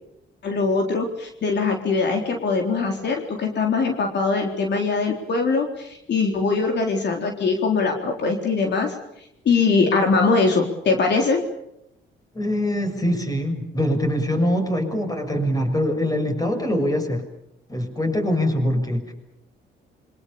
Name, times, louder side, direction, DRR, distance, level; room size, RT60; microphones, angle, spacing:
voice 1, 0.4-9.0 9.4-11.4, left 4 dB, 60° left, 3 dB, 4.0 m, -22 dB
voice 2, 12.3-17.3 17.7-19.1, equal, 20° left, 5 dB, 6.9 m, -23 dB
27.0 x 25.0 x 7.1 m, 0.80 s
cardioid pair, 90°, 20 cm